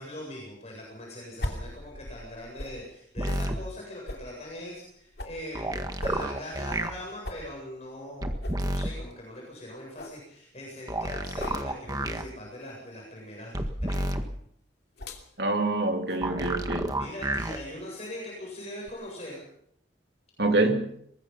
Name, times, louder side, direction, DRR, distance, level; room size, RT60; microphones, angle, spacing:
voice 1, 0.0-14.0 17.0-19.4, left 1 dB, 35° left, 8.0 m, -41 dB
sound 1, 1.4-2.8 3.2-3.4 4.1-5.4 6.0-7.0 7.2-7.5 7.9-8.0 8.4-8.6 9.1-9.2 9.6-9.7 10.0-10.2 11.3-11.6 12.6-12.8 13.9-14.2 15.0-15.3 16.1-16.3, left 1 dB, 60° left, 2.9 m, -39 dB
sound 2, 3.2-3.6 5.5-6.9 8.2-8.9 10.9-12.2 13.5-14.2 16.2-17.6 18.9-19.0, right 1 dB, 20° right, 1.7 m, -30 dB
voice 2, 15.4-16.9 20.4-20.9, right 2 dB, 65° right, 2.7 m, -26 dB
23.5 x 21.0 x 5.7 m
head